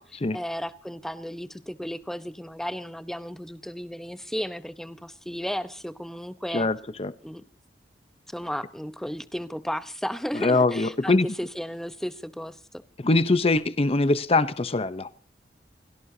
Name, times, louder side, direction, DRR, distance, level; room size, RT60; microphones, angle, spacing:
voice 1, 0.0-6.7 7.2-7.4 8.3-12.6, equal, 5° left, 0.8 m, -34 dB
voice 2, 6.5-7.1 10.3-11.3 13.0-15.1, left 2 dB, 35° left, 0.8 m, -22 dB
28.5 x 17.0 x 2.8 m
head